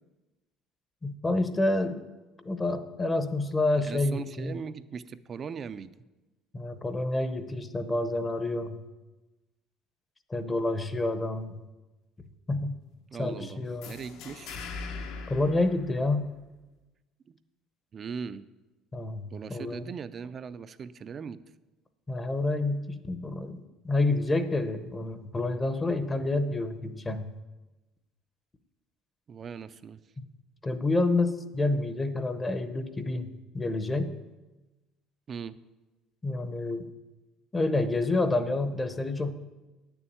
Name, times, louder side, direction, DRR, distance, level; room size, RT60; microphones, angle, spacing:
voice 1, 1.0-2.0 2.4-4.5 6.5-8.8 10.3-11.6 12.5-12.8 13.2-13.9 15.3-16.3 18.9-19.2 19.5-19.9 22.1-27.3 30.6-34.1 36.2-36.9 37.5-39.3, left 2 dB, 15° left, 10 dB, 0.8 m, -28 dB
voice 2, 3.8-5.9 13.1-14.6 17.3-17.4 17.9-18.5 19.3-21.4 29.3-30.0 35.3-35.6, right 6 dB, 30° right, 14 dB, 0.4 m, -39 dB
sound 1, 13.8-16.5, left 4 dB, 70° left, 1.3 m, -41 dB
9.6 x 7.0 x 8.7 m, 1.1 s
cardioid pair, 155°, 0 cm